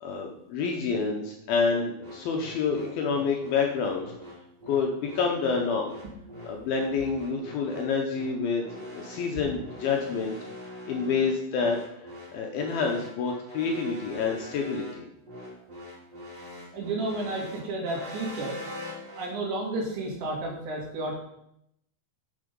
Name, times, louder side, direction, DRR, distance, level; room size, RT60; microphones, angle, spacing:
voice 1, 0.0-4.1 4.7-5.9 6.4-8.6 8.9-10.4 10.9-15.1, left 5 dB, 75° left, 1 dB, 2.3 m, -28 dB
sound 1, 2.0-19.3, left 1 dB, 25° right, 4.3 m, -43 dB
voice 2, 16.7-18.6 19.2-21.2, right 2 dB, 75° right, -1 dB, 4.5 m, -32 dB
10.0 x 5.9 x 5.3 m, 0.78 s
omnidirectional pair, 5.1 m